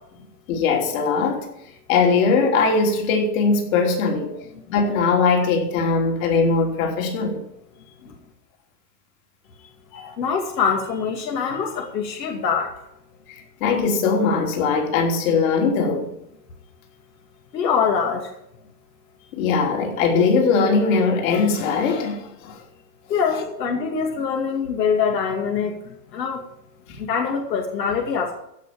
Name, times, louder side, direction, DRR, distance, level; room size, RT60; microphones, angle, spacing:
voice 1, 0.5-1.5 1.9-4.4 4.7-7.4 9.9-10.1 13.6-16.1 19.3-22.6 26.9-27.0, left 4 dB, 50° left, 3.3 m, -20 dB
voice 2, 10.2-12.7 17.5-18.3 23.1-26.4 27.0-28.3, left 6 dB, 85° left, 2.3 m, -24 dB
15.5 x 5.6 x 8.5 m
supercardioid pair, 150°, 49 cm